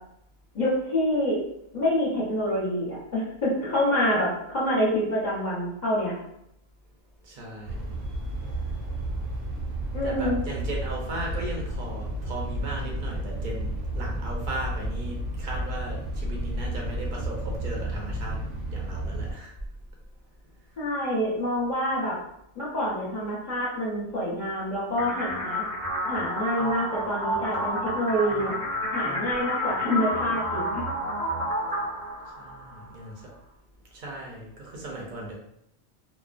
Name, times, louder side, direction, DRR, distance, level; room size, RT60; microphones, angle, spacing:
voice 1, 0.5-1.4 1.7-6.1 9.9-10.4 20.8-22.2 22.5-25.6 26.1-28.5 28.9-30.8, equal, 40° left, -8 dB, 0.8 m, -27 dB
voice 2, 7.2-7.9 10.0-18.4 18.7-19.5 32.4-33.3 33.9-35.3, right 2 dB, 55° right, -2 dB, 0.6 m, -37 dB
sound 1, 7.6-19.3, right 1 dB, 80° right, 1.0 m, -32 dB
sound 2, 25.0-32.9, equal, 5° left, 0.4 m, -30 dB
2.4 x 2.1 x 2.4 m, 0.78 s
omnidirectional pair, 1.3 m